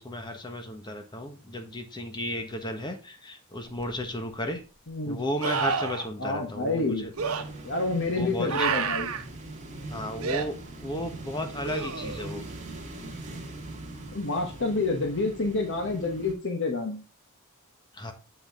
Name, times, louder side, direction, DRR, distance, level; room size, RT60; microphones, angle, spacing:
voice 1, 0.0-4.6 5.0-7.1 8.1-8.7 9.9-12.5 17.9-18.1, left 1 dB, 20° left, 6 dB, 1.1 m, -34 dB
sound 1, 3.8-3.9 5.4-6.1 7.2-7.4 8.5-9.2 10.2-10.5 11.6-12.3 15.5-15.6, right 6 dB, 85° right, 0.9 m, -29 dB
voice 2, 4.9-5.2 6.2-7.1 7.6-9.1 14.1-17.0, left 3 dB, 55° left, 3 dB, 1.2 m, -28 dB
sound 2, 7.2-16.3, right 2 dB, 30° right, 1.9 m, -41 dB
7.4 x 5.3 x 3.6 m, 0.33 s
head